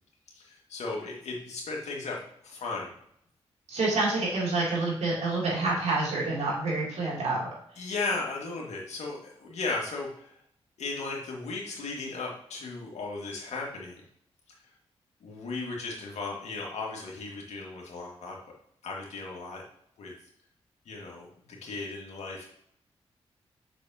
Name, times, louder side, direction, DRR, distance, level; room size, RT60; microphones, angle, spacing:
voice 1, 0.3-2.2 2.4-2.9 7.8-10.4 10.8-14.0 15.2-18.4 18.8-19.6 20.0-20.1 20.9-22.5, left 3 dB, 75° left, -1 dB, 1.9 m, -36 dB
voice 2, 3.7-7.5, right 3 dB, 75° right, -4 dB, 2.8 m, -28 dB
6.8 x 6.1 x 2.8 m, 0.70 s
supercardioid pair, 45°, 11 cm